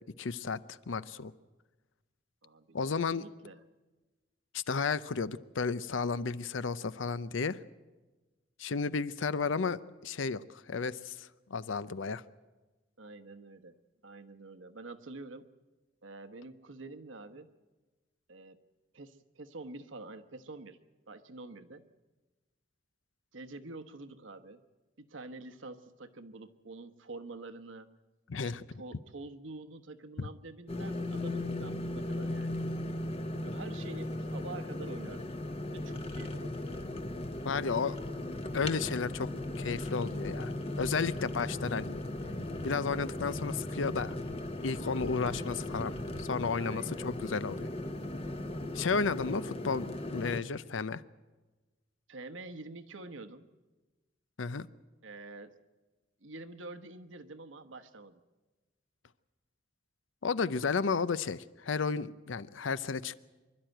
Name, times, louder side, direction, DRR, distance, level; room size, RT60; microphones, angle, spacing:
voice 1, 0.2-1.3 2.7-3.2 4.5-7.6 8.6-12.2 28.3-28.6 30.2-30.3 37.4-38.0 38.5-39.3 39.6-42.0 42.6-44.2 44.6-45.9 46.2-47.7 48.7-51.0 54.4-54.7 60.2-63.1, left 5 dB, 85° left, 16 dB, 0.6 m, -33 dB
voice 2, 2.4-3.6 13.0-13.8 14.0-15.5 16.0-17.5 18.3-18.6 18.9-20.8 21.1-21.8 23.3-24.6 25.0-28.0 28.4-32.6 33.4-35.3 35.7-36.9 46.5-47.1 52.1-53.5 55.0-55.5 56.2-58.2, right 3 dB, 85° right, 8 dB, 1.1 m, -47 dB
sound 1, 30.7-50.4, left 1 dB, 30° left, 0.9 m, -37 dB
25.5 x 12.0 x 9.0 m, 1.2 s
head